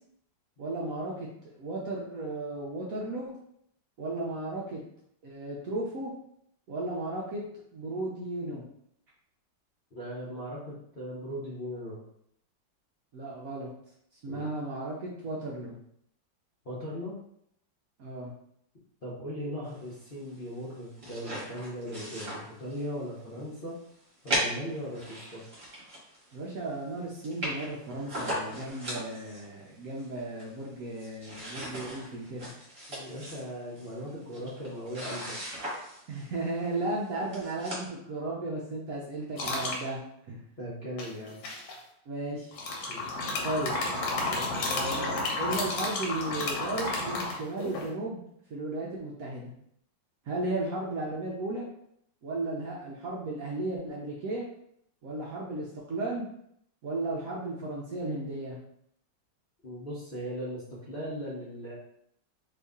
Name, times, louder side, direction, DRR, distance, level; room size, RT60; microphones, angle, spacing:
voice 1, 0.6-1.3 1.5-3.3 4.0-4.8 5.2-6.1 6.7-7.4 7.7-8.6 13.1-13.7 14.2-15.8 18.0-18.3 26.3-32.5 36.1-40.0 40.3-40.4 42.1-42.6 43.4-43.8 44.6-48.2 48.5-49.5 50.3-51.7 52.2-54.5 55.0-56.3 56.8-58.6, right 2 dB, 65° right, -4 dB, 0.9 m, -35 dB
voice 2, 9.9-12.0 14.3-14.5 16.6-17.1 19.0-23.8 24.2-25.4 32.9-35.3 40.6-41.4 42.9-43.1 59.6-61.7, equal, 45° left, -9 dB, 0.7 m, -38 dB
sound 1, 20.7-23.0 23.4-23.5 24.3-26.3 26.7-26.8 27.0-27.1 27.2-29.5 30.0-30.7 30.9-36.3 37.0-37.1 37.3-37.9, equal, 35° right, 1.3 m, -37 dB
sound 2, 39.4-39.8 41.0-41.7 42.5-47.9, left 2 dB, 70° left, 1.3 m, -31 dB
3.0 x 2.7 x 3.5 m, 0.72 s
omnidirectional pair, 2.0 m